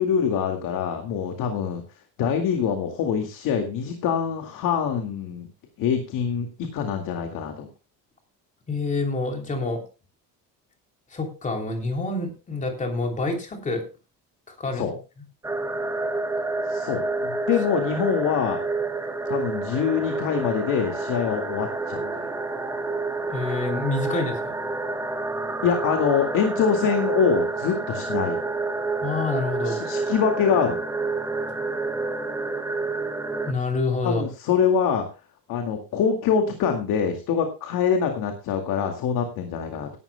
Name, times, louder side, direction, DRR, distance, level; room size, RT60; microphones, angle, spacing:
voice 1, 0.0-1.8 2.2-5.5 5.8-7.7 14.7-14.9 16.7-18.7 19.3-22.3 25.6-28.4 29.6-30.8 34.0-35.1 35.5-39.9, left 7 dB, 65° left, 5 dB, 2.2 m, -24 dB
voice 2, 8.7-9.8 11.1-13.8 14.5-15.0 23.3-24.6 29.0-29.8 33.4-34.2, left 3 dB, 20° left, 3 dB, 3.2 m, -27 dB
sound 1, 15.4-33.5, right 3 dB, 10° right, 1.1 m, -29 dB
17.5 x 12.5 x 2.3 m, 0.30 s
cardioid pair, 180°, 35 cm